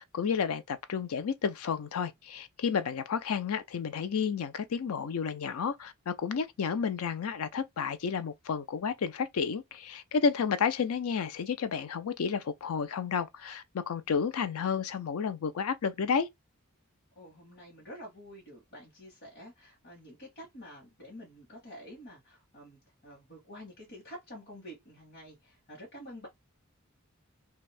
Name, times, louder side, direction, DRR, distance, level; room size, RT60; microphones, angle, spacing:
voice 1, 0.0-16.3, left 6 dB, 80° left, 0.4 m, -31 dB
voice 2, 17.1-26.3, equal, 50° left, 1.1 m, -48 dB
2.6 x 2.3 x 3.2 m
head